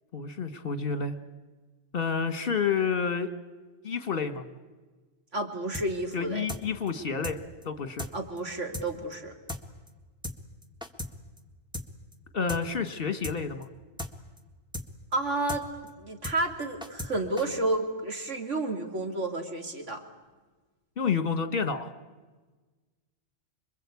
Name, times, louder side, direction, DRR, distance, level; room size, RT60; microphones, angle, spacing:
voice 1, 0.1-1.2 1.9-3.3 3.8-4.4 6.1-8.1 12.3-13.7 21.0-21.9, left 5 dB, 50° left, 9 dB, 1.6 m, -29 dB
voice 2, 5.3-6.5 8.1-9.3 15.1-15.7 16.0-20.0, right 2 dB, 90° right, 3 dB, 2.9 m, -31 dB
sound 1, 5.7-5.9 6.1-6.2 6.5-6.6 6.9-7.0 7.2-7.4 7.6-7.7 8.0-8.1 8.4-8.5 8.7-8.9 9.1-9.2 9.5-9.6 9.9-10.0 10.2-10.4 10.6-11.1 11.4-11.5 11.7-11.9 12.1-12.2 12.5-12.6 12.9-13.0 13.2-13.4 13.6-13.7 14.0-14.1 14.4-14.5 14.7-14.9 15.1-15.2 15.5-15.6 15.9-16.0 16.2-16.4 16.6-17.1 17.4-17.5, left 1 dB, 5° right, 1.5 m, -36 dB
26.5 x 23.0 x 8.4 m, 1.3 s
omnidirectional pair, 1.2 m